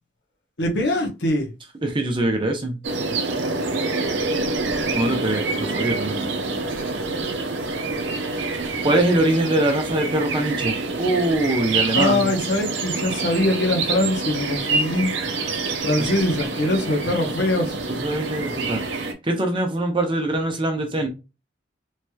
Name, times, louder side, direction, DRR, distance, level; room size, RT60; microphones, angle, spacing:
voice 1, 0.6-1.5 11.9-15.1 15.8-17.8, left 1 dB, 60° left, 0.9 m, -22 dB
voice 2, 1.8-2.8 4.9-6.3 8.8-12.3 16.0-16.1 18.0-18.8 19.2-21.1, right 1 dB, 25° right, 0.6 m, -23 dB
sound 1, 2.8-19.1, right 3 dB, 65° right, 0.6 m, -26 dB
3.2 x 2.9 x 2.2 m
head